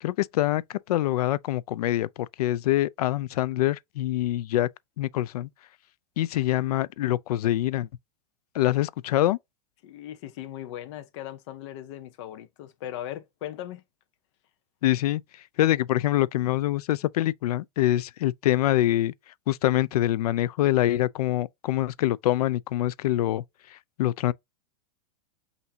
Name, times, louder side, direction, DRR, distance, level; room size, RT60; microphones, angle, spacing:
voice 1, 0.0-4.7 5.0-5.5 6.2-7.9 8.5-9.4 14.8-19.1 19.5-24.3, left 14 dB, 85° left, 0.4 m, -25 dB
voice 2, 9.8-13.8, left 12 dB, 50° left, 0.7 m, -38 dB
5.7 x 2.7 x 2.7 m
supercardioid pair, 160°, 19 cm